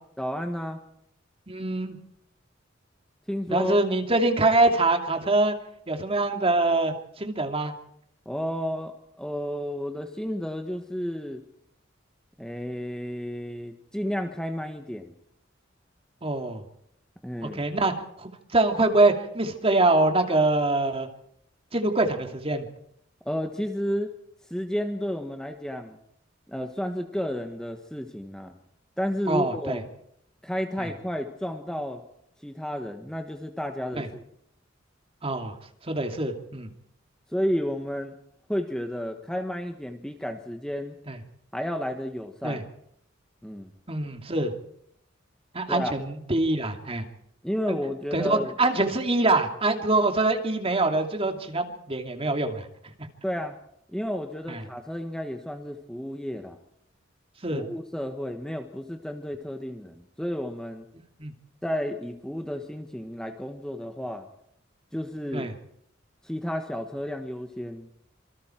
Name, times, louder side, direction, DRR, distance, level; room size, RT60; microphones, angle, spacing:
voice 1, 0.2-0.8 3.3-3.8 8.2-11.4 12.4-15.1 17.2-17.6 23.2-24.1 24.5-26.0 26.5-28.5 29.0-29.8 30.4-32.0 32.4-34.2 37.3-38.2 38.5-41.0 41.5-42.6 43.4-43.7 45.7-45.9 47.4-48.5 53.2-53.6 53.9-56.6 57.5-60.8 61.6-64.3 64.9-65.5 66.2-67.9, equal, 5° left, 5 dB, 1.5 m, -32 dB
voice 2, 1.5-2.0 3.5-5.5 5.9-7.7 16.2-16.6 17.5-21.1 21.7-22.7 29.3-29.8 30.8-30.9 34.0-34.1 35.2-35.5 35.8-36.7 41.1-41.2 42.4-42.6 43.9-44.5 45.5-47.0 47.7-47.8 48.1-52.7 54.5-54.6 57.4-57.6 61.2-61.3 65.3-65.5, right 2 dB, 30° right, 4 dB, 2.7 m, -24 dB
27.0 x 24.0 x 4.6 m, 0.72 s
head